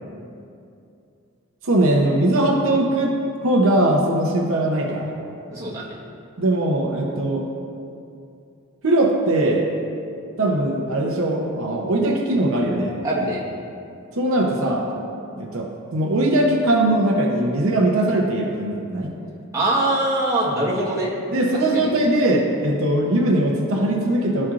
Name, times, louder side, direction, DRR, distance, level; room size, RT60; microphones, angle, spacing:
voice 1, 1.6-3.1 3.4-5.1 6.4-7.5 8.8-9.6 10.4-12.9 14.2-14.8 15.4-19.2 21.3-24.5, right 1 dB, 65° right, -1 dB, 0.7 m, -20 dB
voice 2, 5.5-5.8 13.0-13.4 19.5-21.2 21.7-21.9, right 1 dB, 15° right, -7 dB, 1.2 m, -22 dB
12.5 x 4.4 x 2.5 m, 2.6 s
head